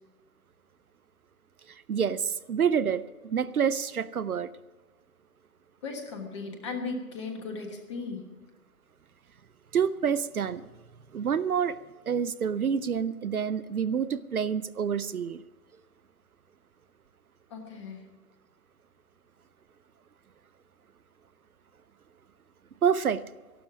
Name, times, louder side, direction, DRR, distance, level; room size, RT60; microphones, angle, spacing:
voice 1, 1.7-4.5 9.7-10.6 11.1-11.8 12.1-15.4 22.8-23.2, right 7 dB, 65° right, 18 dB, 0.6 m, -28 dB
voice 2, 5.8-8.2 17.5-18.1, left 4 dB, 20° left, 3 dB, 1.4 m, -37 dB
14.5 x 12.0 x 6.0 m, 1.3 s
figure-of-eight pair, 150°, 47 cm